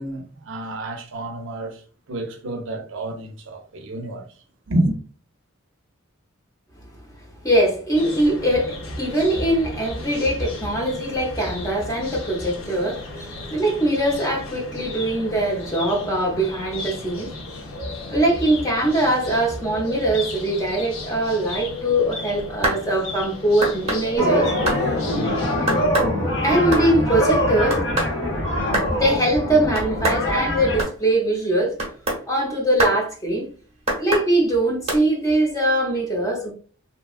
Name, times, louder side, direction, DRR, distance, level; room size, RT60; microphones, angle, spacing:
voice 1, 0.0-5.0, right 1 dB, 65° right, 0.5 m, -29 dB
voice 2, 7.4-17.7 18.1-24.5 26.4-27.8 28.9-31.8 32.3-33.5 34.0-36.5, right 1 dB, 15° left, 0.6 m, -22 dB
sound 1, 7.9-25.9, left 2 dB, 85° left, 0.6 m, -36 dB
sound 2, 22.4-22.8 23.6-24.0 24.7-24.8 25.7-26.1 26.5-26.9 27.7-28.1 28.7-28.9 29.7-30.2 30.8-30.9 31.8-32.2 32.8-33.0 33.9-34.3 34.9-35.0, right 1 dB, 30° right, 0.8 m, -24 dB
sound 3, 24.2-30.8, equal, 60° left, 1.0 m, -23 dB
2.8 x 2.2 x 2.4 m
head